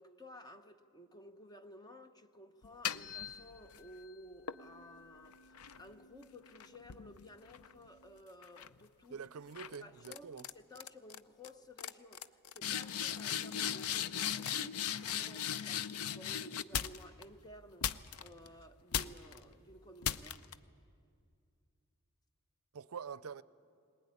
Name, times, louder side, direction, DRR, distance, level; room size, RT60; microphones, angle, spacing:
voice 1, 0.0-9.2 9.7-20.4, equal, 20° left, 0.9 m, -55 dB
sound 1, 2.6-3.9 4.5-8.0 8.4-8.8 9.6-9.8 10.0-10.5 10.8-11.2 11.4-11.5 11.8-17.2 17.8-18.5 18.9-19.4 20.0-20.5, left 9 dB, 70° left, 0.6 m, -39 dB
voice 2, 9.1-10.5 22.7-23.4, right 6 dB, 70° right, 0.5 m, -46 dB
20.5 x 20.0 x 9.7 m
head